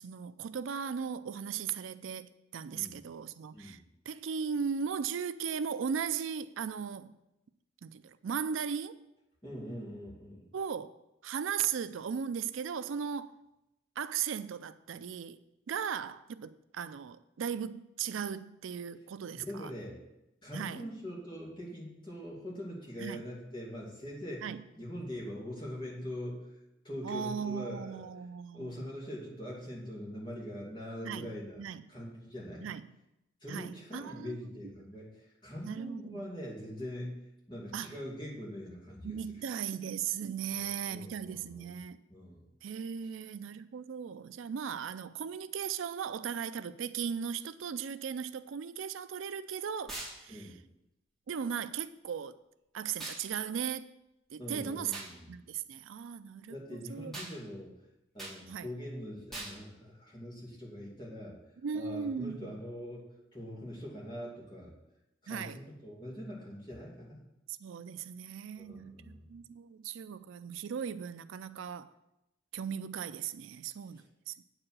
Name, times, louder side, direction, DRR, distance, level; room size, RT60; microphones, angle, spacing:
voice 1, 0.0-7.2 7.8-9.0 10.5-11.0 11.2-13.4 14.0-15.4 15.7-19.7 20.5-20.9 23.0-23.2 24.4-24.6 27.0-28.8 31.0-31.3 31.6-31.8 32.6-33.0 33.5-34.4 35.6-36.2 37.7-38.0 39.0-42.0 42.6-50.5 51.3-52.4 52.7-53.9 54.3-55.0 55.3-57.1 58.5-58.7 61.6-62.6 65.3-65.6 67.6-71.9 72.5-74.4, right 7 dB, 85° right, 0.4 m, -37 dB
voice 2, 9.4-10.4 19.3-20.0 20.4-24.5 24.8-26.6 26.8-28.0 28.5-31.6 31.9-32.7 33.4-39.2 40.6-41.8 42.1-42.5 50.3-50.6 54.4-55.3 56.5-57.7 58.1-61.4 61.7-64.7 65.2-67.2 68.6-69.2 73.9-74.0, equal, 25° left, 2.5 m, -43 dB
sound 1, 49.9-50.2 53.0-53.2 54.9-55.1 57.1-57.3 58.2-58.4 59.3-59.6, right 2 dB, ahead, 2.3 m, -41 dB
8.6 x 4.9 x 7.4 m
head